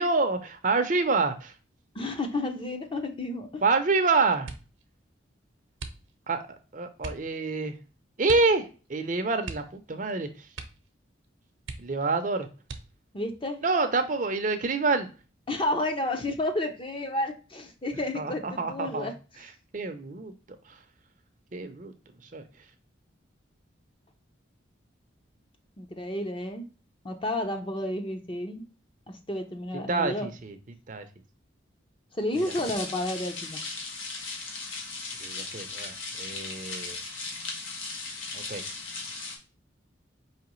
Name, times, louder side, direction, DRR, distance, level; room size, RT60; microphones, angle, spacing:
voice 1, 0.0-1.5 3.6-4.5 6.3-7.7 8.2-10.5 11.8-12.5 13.6-15.1 18.1-19.1 19.7-20.3 20.7-20.8 21.5-21.9 22.2-22.4 29.9-30.6 30.9-31.0 35.2-37.0 38.3-38.6, right 3 dB, 40° right, 8 dB, 0.6 m, -27 dB
voice 2, 1.9-3.6 13.1-13.6 15.5-19.1 25.8-26.6 27.0-28.6 29.1-30.3 32.1-33.6, left 1 dB, 25° left, 5 dB, 0.6 m, -31 dB
sound 1, 4.4-4.9 5.7-6.4 7.0-7.3 8.2-8.6 8.9-9.0 9.4-10.2 10.5-10.9 11.2-11.3 11.6-12.2 12.6-13.2 13.9-14.5 14.9-15.3, right 3 dB, 75° right, 0.8 m, -41 dB
sound 2, 32.3-39.4, left 3 dB, 85° left, 1.3 m, -37 dB
4.9 x 3.0 x 3.0 m, 0.33 s
head